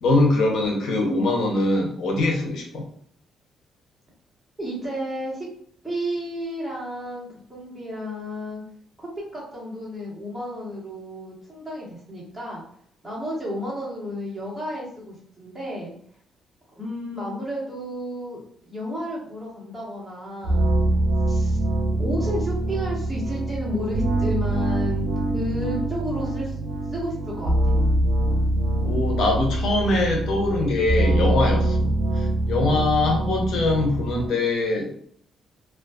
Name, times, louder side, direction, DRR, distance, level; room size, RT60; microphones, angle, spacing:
voice 1, 0.0-2.9 28.8-31.9 32.5-34.9, left 2 dB, 75° left, 0 dB, 0.7 m, -22 dB
voice 2, 4.6-5.5 5.8-8.6 9.0-12.6 13.0-15.9 16.8-18.4 18.7-20.7 21.3-21.6 22.0-26.6 26.9-27.7, equal, 5° right, -6 dB, 1.2 m, -32 dB
sound 1, 20.4-34.3, right 1 dB, 80° right, 0.5 m, -24 dB
2.4 x 2.4 x 2.3 m, 0.62 s
cardioid pair, 90°, 0 cm